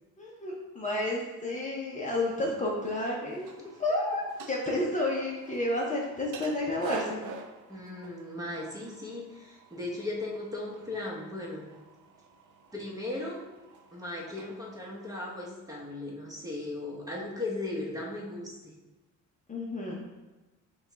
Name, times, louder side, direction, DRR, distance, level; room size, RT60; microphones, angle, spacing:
voice 1, 0.2-3.5 3.8-7.2 19.5-20.0, left 1 dB, 25° left, -3 dB, 0.7 m, -31 dB
sound 1, 2.1-15.4, right 4 dB, 75° right, 0.6 m, -48 dB
voice 2, 7.7-11.7 12.7-13.5 13.9-18.7, left 2 dB, 10° right, -3 dB, 0.9 m, -37 dB
5.1 x 2.3 x 3.9 m, 1.1 s
cardioid pair, 110°, 31 cm